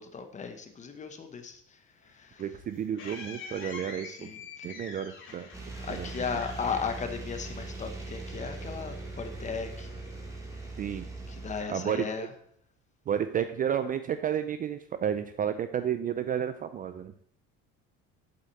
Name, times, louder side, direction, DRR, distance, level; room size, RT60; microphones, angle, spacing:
voice 1, 0.0-1.8 2.1-2.4 4.0-4.8 5.8-9.9 11.3-12.3, left 5 dB, 25° left, 7 dB, 1.0 m, -36 dB
sound 1, 2.0-7.8, left 5 dB, 45° left, 2.3 m, -46 dB
voice 2, 2.4-4.3 4.6-5.5 5.9-6.1 10.8-11.1 11.7-12.3 13.1-17.1, right 9 dB, 30° right, 11 dB, 0.4 m, -31 dB
sound 2, 5.5-11.6, right 2 dB, 10° right, 2.2 m, -40 dB
7.8 x 7.4 x 4.1 m, 0.65 s
cardioid pair, 140°, 29 cm